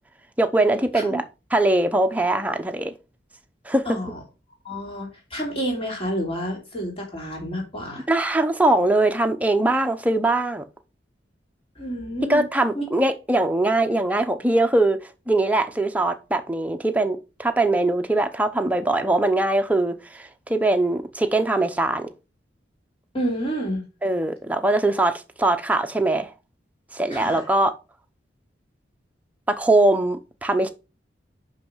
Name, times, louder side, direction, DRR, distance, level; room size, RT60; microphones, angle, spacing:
voice 1, 0.4-1.2 1.5-2.9 3.7-4.0 8.1-10.6 12.3-15.0 15.3-22.1 24.0-26.3 26.9-27.7 29.5-30.7, right 2 dB, 10° right, 0.8 m, -21 dB
voice 2, 3.8-4.2 4.6-8.0 11.8-12.4 12.7-12.9 23.1-23.9 27.1-27.4, equal, 30° left, 3.0 m, -29 dB
5.6 x 5.6 x 5.5 m
head